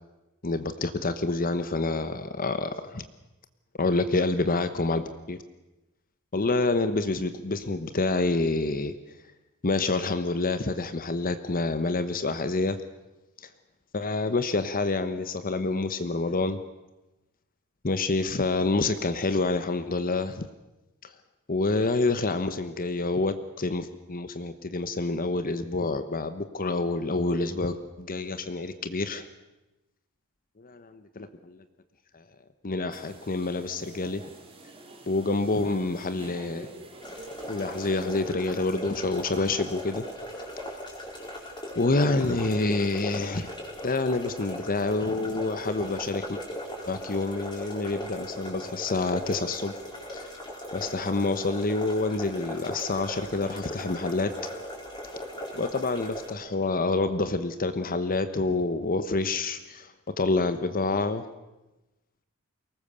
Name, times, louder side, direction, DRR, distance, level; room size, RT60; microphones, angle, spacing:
voice 1, 0.4-3.1 3.8-5.4 6.3-8.9 9.6-12.8 13.9-16.6 17.8-20.5 21.0-21.1 21.5-29.3 30.6-31.6 32.1-32.2 32.6-34.2 35.1-36.7 37.5-40.1 41.7-43.5 43.8-46.4 46.9-49.7 50.1-50.3 50.7-54.3 55.5-61.3, left 3 dB, 40° left, 10 dB, 1.0 m, -27 dB
sound 1, 32.9-38.2, right 2 dB, 25° right, 2.8 m, -47 dB
sound 2, 37.0-56.3, equal, 20° left, 4.7 m, -38 dB
23.0 x 19.5 x 6.9 m, 1.0 s
head